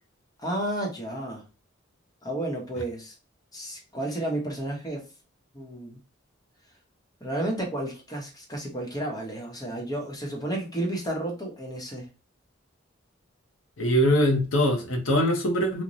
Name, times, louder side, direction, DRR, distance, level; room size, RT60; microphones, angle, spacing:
voice 1, 0.4-1.4 2.2-3.1 3.5-5.0 5.5-6.0 7.2-12.1, right 1 dB, 20° left, 0 dB, 0.9 m, -32 dB
voice 2, 13.8-15.8, equal, 85° left, 3 dB, 0.8 m, -22 dB
3.0 x 2.1 x 2.5 m, 0.31 s
head